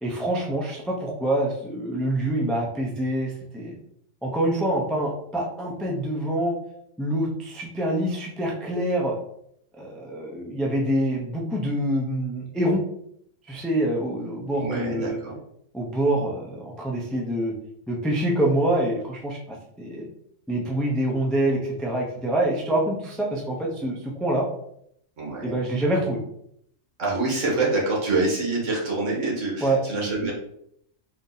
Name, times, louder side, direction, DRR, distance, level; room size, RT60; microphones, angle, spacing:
voice 1, 0.0-3.7 4.2-6.5 7.0-9.2 9.8-12.8 13.5-15.2 15.7-17.5 17.9-20.1 20.5-24.5 25.4-26.2 29.6-29.8, right 1 dB, ahead, -2 dB, 0.4 m, -26 dB
voice 2, 14.5-15.4 25.2-25.6 27.0-30.3, right 3 dB, 65° right, -3 dB, 1.7 m, -26 dB
3.8 x 2.8 x 3.9 m, 0.72 s
omnidirectional pair, 1.4 m